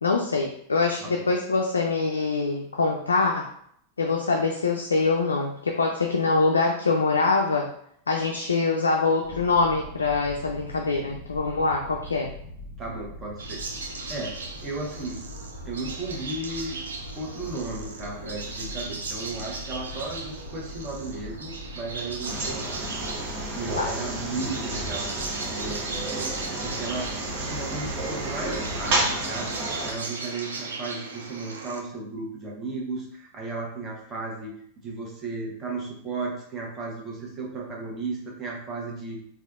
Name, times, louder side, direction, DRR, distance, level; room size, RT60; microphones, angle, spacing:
voice 1, 0.0-3.5 4.0-7.7 8.1-12.3 23.8-23.9, left 3 dB, 80° left, 1 dB, 0.3 m, -24 dB
sound 1, 9.2-29.2, left 1 dB, 40° left, 0.8 m, -42 dB
voice 2, 12.8-13.6 14.1-14.3 14.6-15.2 15.6-16.8 17.2-22.8 23.5-25.1 25.4-27.1 27.4-34.5 34.8-39.2, right 3 dB, 30° right, -2 dB, 1.0 m, -35 dB
sound 2, 13.4-31.8, right 3 dB, 75° right, 0.4 m, -37 dB
sound 3, 22.2-29.9, right 2 dB, 55° right, 0.8 m, -31 dB
3.2 x 2.4 x 2.4 m, 0.67 s
figure-of-eight pair, 90°, 0 cm